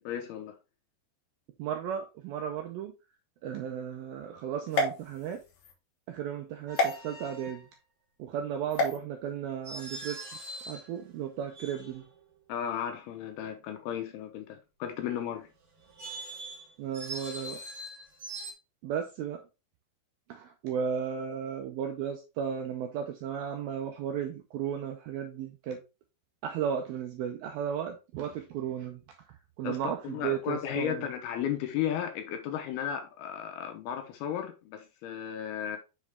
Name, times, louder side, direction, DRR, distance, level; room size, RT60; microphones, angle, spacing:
voice 1, 0.0-0.6 12.5-15.5 29.6-35.8, left 9 dB, 80° left, 2.4 m, -34 dB
voice 2, 1.6-2.9 3.4-5.4 6.1-7.7 8.2-10.2 10.7-12.1 16.8-17.6 18.8-19.4 20.3-25.8 26.4-29.0 29.6-31.1, right 8 dB, 85° right, 2.1 m, -34 dB
sound 1, 4.7-5.7 6.8-6.9 8.7-9.0, left 3 dB, 60° left, 2.1 m, -29 dB
sound 2, 6.7-7.6 9.6-10.9 11.5-12.2 15.8-18.5, right 2 dB, 35° right, 2.0 m, -42 dB
6.5 x 4.9 x 3.4 m
omnidirectional pair, 5.0 m